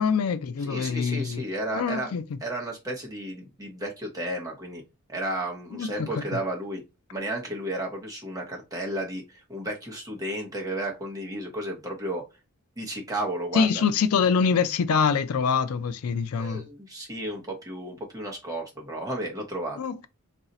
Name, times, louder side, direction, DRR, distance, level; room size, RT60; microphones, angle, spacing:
voice 1, 0.0-1.4 1.7-2.3 5.7-6.4 13.5-16.6 19.8-20.1, left 6 dB, 80° left, 0.4 m, -25 dB
voice 2, 0.6-2.1 2.4-4.8 5.1-6.8 7.1-12.2 12.8-13.8 16.4-19.8, right 1 dB, 15° right, 0.9 m, -33 dB
2.6 x 2.4 x 4.1 m
head